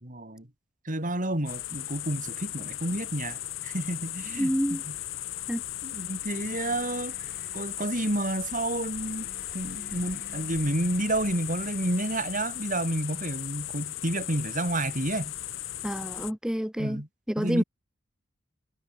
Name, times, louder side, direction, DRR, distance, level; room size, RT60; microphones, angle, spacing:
voice 1, 0.0-0.5 0.8-4.9 5.8-7.2 7.5-9.3 9.5-15.3 16.8-17.1 17.4-17.6, right 1 dB, 40° right, 4.6 m, -30 dB
sound 1, 1.5-16.3, left 13 dB, 80° left, 3.1 m, -37 dB
voice 2, 4.4-4.8 5.5-5.6 15.8-17.0 17.3-17.6, equal, 5° right, 0.8 m, -28 dB
sound 2, 6.3-7.8 8.9-12.4 13.4-16.4, left 2 dB, 50° left, 7.5 m, -52 dB
head